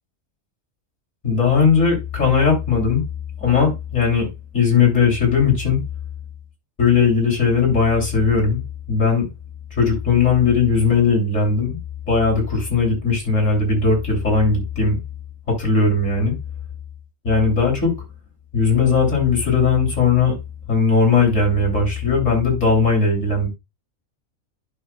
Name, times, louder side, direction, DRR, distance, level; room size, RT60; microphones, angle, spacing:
voice 1, 1.2-3.0 3.4-4.3 4.5-5.8 6.8-8.6 8.9-9.3 9.7-11.8 12.1-15.0 15.5-16.3 17.2-17.9 18.5-20.4 20.7-23.5, left 5 dB, 60° left, 3.5 m, -18 dB
11.0 x 5.9 x 2.3 m
omnidirectional pair, 1.5 m